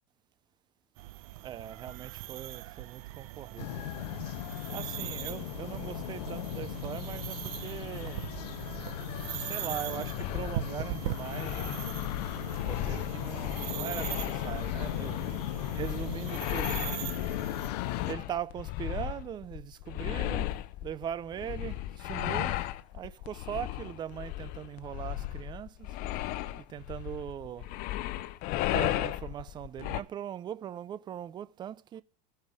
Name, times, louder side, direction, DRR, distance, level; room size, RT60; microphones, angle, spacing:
sound 1, 1.0-17.7, right 16 dB, 65° right, 0.7 m, -40 dB
voice 1, 1.4-3.8 4.7-8.5 9.4-12.1 12.3-15.2 15.7-17.0 18.0-22.6 22.9-26.0 26.6-27.7 28.7-32.0, right 10 dB, 20° right, 0.5 m, -40 dB
sound 2, 3.6-18.1, left 16 dB, 90° left, 0.5 m, -37 dB
sound 3, 10.2-30.0, left 14 dB, 45° left, 0.7 m, -36 dB
14.5 x 5.6 x 8.1 m
supercardioid pair, 150°, 20 cm